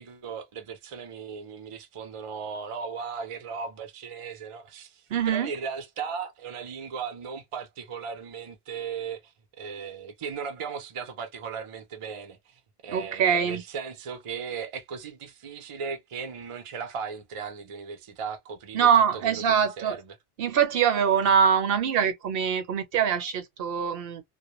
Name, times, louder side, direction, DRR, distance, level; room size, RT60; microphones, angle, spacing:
voice 1, 0.0-20.2, right 6 dB, 45° right, 0.4 m, -37 dB
voice 2, 5.1-5.5 12.9-13.6 18.7-20.0 20.4-24.2, right 7 dB, 70° right, 0.8 m, -23 dB
2.1 x 2.0 x 2.9 m
omnidirectional pair, 1.0 m